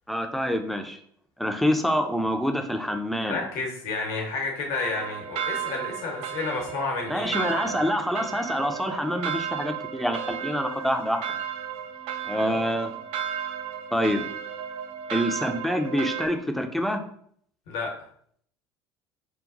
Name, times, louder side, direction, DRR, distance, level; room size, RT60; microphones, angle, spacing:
voice 1, 0.1-1.0 1.4-3.4 7.1-11.2 12.2-12.9 13.9-14.2 15.1-17.0, equal, ahead, 5 dB, 0.5 m, -26 dB
voice 2, 3.3-7.4 17.7-17.9, left 3 dB, 60° left, 0 dB, 1.0 m, -31 dB
sound 1, 4.7-16.3, right 8 dB, 55° right, 0.4 m, -34 dB
5.1 x 2.3 x 2.5 m, 0.63 s
figure-of-eight pair, 65°, 12 cm